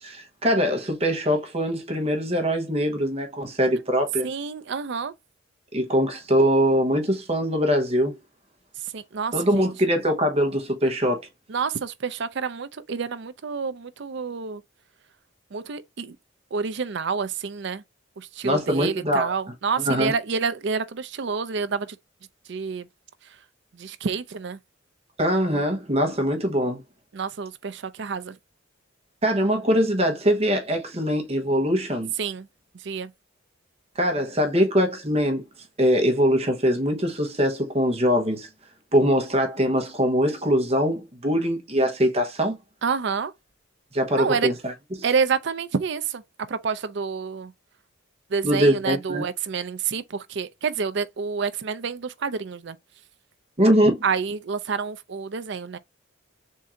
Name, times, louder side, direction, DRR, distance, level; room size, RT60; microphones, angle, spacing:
voice 1, 0.0-4.3 5.7-8.1 9.3-11.2 18.4-19.3 19.8-20.1 25.2-26.8 29.2-32.1 34.0-35.4 35.8-38.5 38.9-42.6 43.9-44.7 48.4-49.2 53.6-54.0, equal, 30° right, 0.9 m, -22 dB
voice 2, 4.2-5.1 8.9-9.7 11.5-14.6 15.5-16.2 16.5-17.8 18.2-22.0 22.5-22.9 23.7-24.6 27.1-28.4 32.2-32.5 32.7-33.1 42.8-43.3 44.1-44.5 45.0-46.2 46.5-47.5 48.3-52.8 54.0-55.8, right 5 dB, 60° right, 0.5 m, -28 dB
3.7 x 2.6 x 4.3 m
head